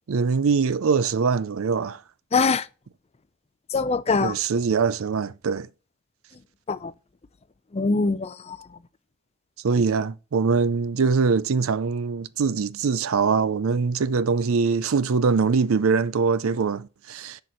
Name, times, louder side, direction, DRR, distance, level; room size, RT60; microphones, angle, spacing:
voice 1, 0.1-2.0 4.2-5.7 9.6-17.4, right 5 dB, 65° right, 0.5 m, -23 dB
voice 2, 2.3-2.7 3.7-4.4 6.7-6.9 7.7-8.7, left 4 dB, 30° left, 0.4 m, -23 dB
6.8 x 5.9 x 6.3 m
head